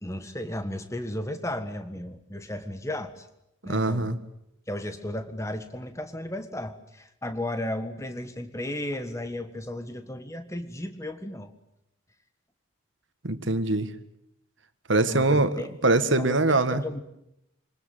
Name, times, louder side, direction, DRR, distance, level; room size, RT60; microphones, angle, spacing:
voice 1, 0.0-3.3 3.6-4.1 4.7-11.5 14.9-15.7 16.1-17.0, left 1 dB, 15° left, 8 dB, 1.6 m, -34 dB
voice 2, 3.6-4.2 13.2-13.9 14.9-16.8, right 2 dB, 70° right, 10 dB, 1.8 m, -23 dB
25.5 x 20.0 x 9.3 m, 0.82 s
head